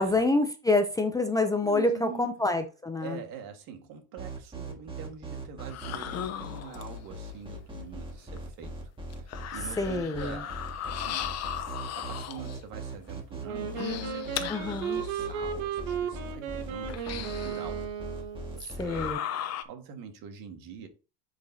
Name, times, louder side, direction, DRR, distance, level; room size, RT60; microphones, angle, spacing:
voice 1, 0.0-3.2 9.8-10.4 14.5-15.0 18.8-19.2, left 2 dB, 10° left, 0.6 m, -27 dB
voice 2, 1.6-2.3 3.0-11.4 11.9-17.8 18.5-20.9, right 7 dB, 60° right, 1.9 m, -44 dB
sound 1, 4.2-19.1, right 1 dB, 15° right, 1.9 m, -40 dB
sound 2, 5.6-7.1 8.4-8.5 9.1-12.6 13.6-15.2 15.8-15.9 16.9-17.8 18.6-19.6, left 10 dB, 45° left, 0.8 m, -37 dB
Wind instrument woodwind instrument, 13.4-18.6, right 8 dB, 90° right, 1.5 m, -35 dB
10.0 x 5.0 x 2.8 m
cardioid pair, 130°, 37 cm